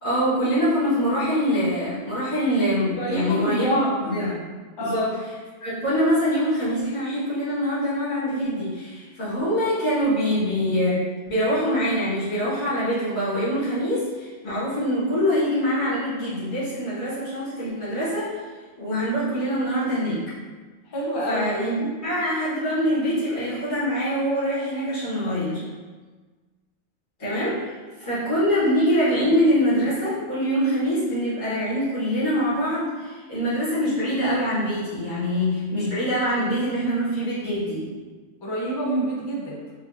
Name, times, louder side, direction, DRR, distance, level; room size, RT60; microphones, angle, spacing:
voice 1, 0.0-4.3 4.8-5.3 5.6-11.0 11.3-18.4 18.8-20.2 21.3-25.6 27.2-27.7 28.0-37.9, equal, 80° left, -11 dB, 2.2 m, -24 dB
voice 2, 3.0-3.9 4.8-5.1 20.9-21.5 38.4-39.5, right 1 dB, 35° left, -3 dB, 0.4 m, -27 dB
4.5 x 2.4 x 2.7 m, 1.4 s
omnidirectional pair, 1.4 m